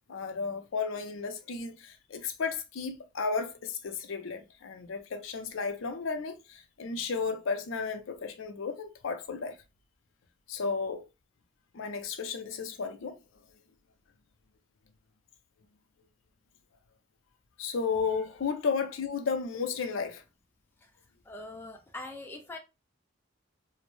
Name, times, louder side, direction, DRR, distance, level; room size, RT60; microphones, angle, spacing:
voice 1, 0.1-9.6 10.5-11.0 11.7-13.2 17.6-20.2, left 5 dB, 75° left, 0.5 m, -33 dB
voice 2, 21.3-22.6, left 2 dB, 10° left, 0.3 m, -42 dB
2.5 x 2.0 x 3.0 m
head